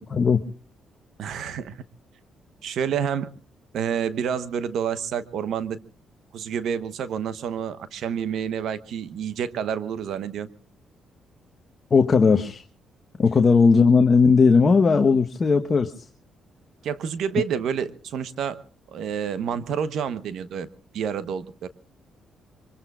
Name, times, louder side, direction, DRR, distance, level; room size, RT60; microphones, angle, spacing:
voice 1, 0.1-0.4 11.9-12.6 13.2-16.1, left 5 dB, 35° left, 5 dB, 1.1 m, -17 dB
voice 2, 1.2-1.8 2.6-3.3 3.7-5.8 6.3-10.5 16.8-18.6 18.9-20.7 20.9-21.7, right 8 dB, 70° right, 15 dB, 1.0 m, -28 dB
25.5 x 23.5 x 2.4 m, 0.40 s
cardioid pair, 90°, 0 cm